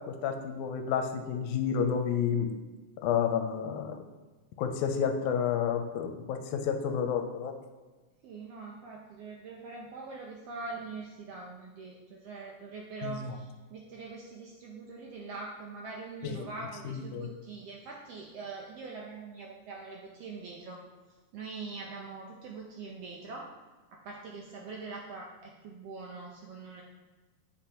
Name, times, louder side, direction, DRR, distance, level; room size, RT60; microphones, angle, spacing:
voice 1, 0.1-2.5 3.0-4.0 4.6-7.5 13.0-13.3 16.2-16.5 16.8-17.3, left 7 dB, 85° left, 6 dB, 2.0 m, -30 dB
voice 2, 8.2-20.9 21.3-23.5 23.9-26.8, right 4 dB, 75° right, -1 dB, 1.4 m, -43 dB
9.9 x 5.5 x 2.9 m, 1.3 s
omnidirectional pair, 3.5 m